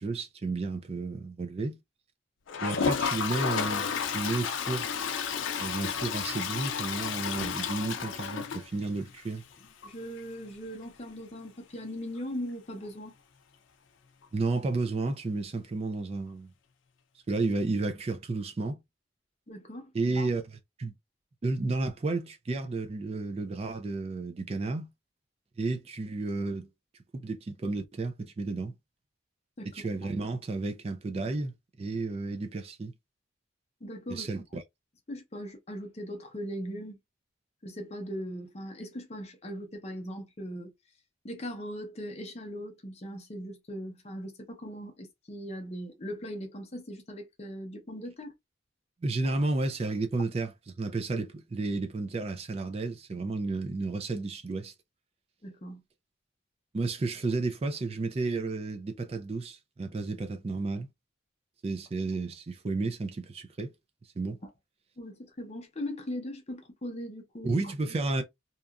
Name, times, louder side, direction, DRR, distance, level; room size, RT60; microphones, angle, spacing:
voice 1, 0.0-1.8 2.6-3.9 4.1-4.9 5.6-9.4 14.3-16.5 17.3-18.8 19.9-20.4 20.8-20.9 21.4-24.9 25.6-26.7 27.1-28.7 29.7-32.9 34.1-34.6 49.0-54.7 56.7-60.9 61.6-63.7 64.2-64.4 67.4-68.2, right 3 dB, 30° right, 0.3 m, -32 dB
Toilet flush, 2.5-9.2 9.5-9.6 9.8-9.9 10.2-10.3 12.8-12.9 14.2-14.3, left 6 dB, 75° left, 0.4 m, -32 dB
voice 2, 9.8-13.1 19.5-20.3 29.6-29.7 30.0-30.1 33.8-34.3 35.1-37.0 37.6-40.7 41.2-48.3 49.2-49.4 55.4-55.8 64.4-64.5 65.0-67.6, equal, 35° left, 0.6 m, -39 dB
2.8 x 2.4 x 2.3 m
head